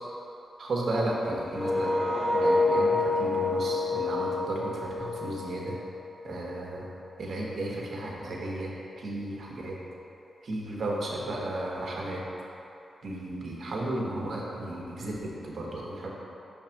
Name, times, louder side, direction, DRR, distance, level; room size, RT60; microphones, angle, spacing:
voice 1, 0.6-2.0 2.3-5.8 6.2-6.8 7.2-9.8 10.4-12.2 13.0-16.1, right 1 dB, 60° right, -3 dB, 1.1 m, -34 dB
sound 1, 1.5-6.4, left 2 dB, 30° left, 0.5 m, -27 dB
5.6 x 3.6 x 5.8 m, 2.9 s
wide cardioid pair, 105°, 0 cm